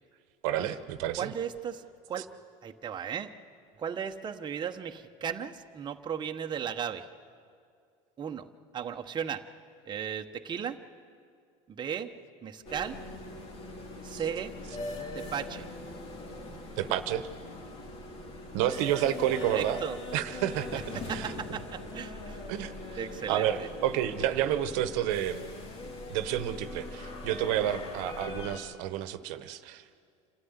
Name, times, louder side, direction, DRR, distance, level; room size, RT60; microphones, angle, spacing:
voice 1, 0.4-1.3 14.1-14.2 16.8-17.3 18.5-19.8 20.1-21.3 22.5-23.0 23.3-25.4 26.1-29.9, right 12 dB, 75° right, 11 dB, 1.1 m, -30 dB
voice 2, 1.2-2.3 2.6-3.3 3.8-7.1 8.2-8.4 8.7-9.4 9.8-10.8 11.7-12.1 12.4-13.0 14.0-14.5 15.1-15.7 19.3-20.0 21.1-22.4 23.0-23.7, right 8 dB, 30° right, 4 dB, 1.1 m, -36 dB
sound 1, 12.6-28.6, left 2 dB, 40° left, 3.0 m, -41 dB
27.5 x 13.0 x 9.6 m, 2.2 s
supercardioid pair, 110°, 16 cm